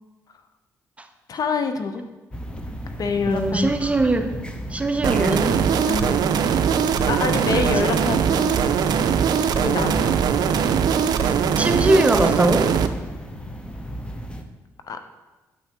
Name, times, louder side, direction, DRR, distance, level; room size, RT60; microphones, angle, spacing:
voice 1, 1.3-2.0 3.0-3.7 5.9-6.2 7.1-8.7 9.6-10.1 14.9-15.0, left 5 dB, 55° left, 8 dB, 0.6 m, -26 dB
sound 1, 2.3-14.4, equal, 15° left, 0.7 m, -35 dB
voice 2, 3.3-4.3 4.7-5.6 7.5-7.6 7.9-8.0 11.2-12.7, right 2 dB, 15° right, 6 dB, 0.7 m, -21 dB
sound 2, 5.0-12.9, right 7 dB, 65° right, 0.4 m, -21 dB
7.7 x 5.7 x 2.9 m, 1.1 s
supercardioid pair, 55°, 8 cm